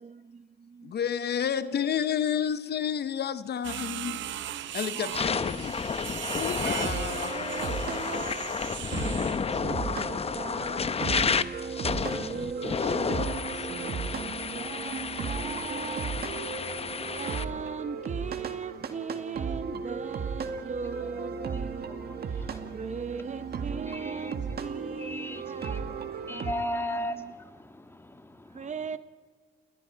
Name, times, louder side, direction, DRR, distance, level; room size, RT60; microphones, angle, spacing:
voice 1, 0.0-0.9 1.5-2.1 3.8-4.7 5.1-5.9 7.2-8.5 8.9-11.6 12.1-16.4 17.2-27.3 28.5-29.0, right 5 dB, 35° right, 0.9 m, -40 dB
voice 2, 0.9-4.2 4.7-5.7 6.3-7.5, left 8 dB, 55° left, 0.9 m, -30 dB
sound 1, 3.6-9.5, right 13 dB, 70° right, 0.6 m, -38 dB
sound 2, 4.3-4.5 5.0-17.4, left 5 dB, 30° left, 0.8 m, -31 dB
sound 3, 6.8-26.5, right 6 dB, 55° right, 1.8 m, -36 dB
voice 3, 20.5-29.0, left 1 dB, 10° left, 1.8 m, -40 dB
29.5 x 20.0 x 4.6 m
cardioid pair, 90°, 20 cm